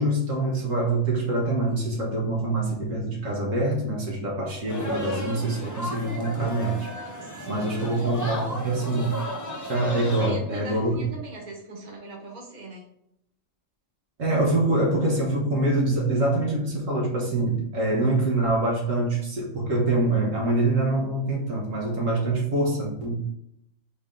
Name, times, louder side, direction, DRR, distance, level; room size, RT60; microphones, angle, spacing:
voice 1, 0.0-6.9 7.5-9.2 9.7-11.1 14.2-23.2, right 2 dB, 70° right, -3 dB, 1.4 m, -25 dB
sound 1, 4.7-10.3, equal, 20° left, 0.5 m, -34 dB
voice 2, 7.2-7.9 9.9-12.8, right 2 dB, 35° right, -2 dB, 1.5 m, -41 dB
4.2 x 3.4 x 3.6 m, 0.78 s
omnidirectional pair, 1.5 m